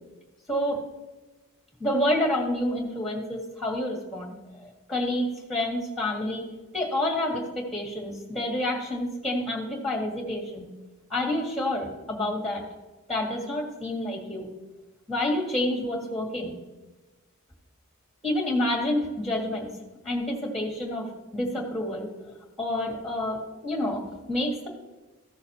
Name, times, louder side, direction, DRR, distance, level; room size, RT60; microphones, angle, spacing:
voice 1, 0.5-0.8 1.8-4.3 4.6-6.4 6.7-10.7 11.1-12.6 13.1-14.5 15.1-16.5 18.2-19.7 20.0-22.1 22.6-24.7, left 1 dB, ahead, 0 dB, 1.8 m, -28 dB
15.0 x 6.4 x 2.9 m, 1.1 s
head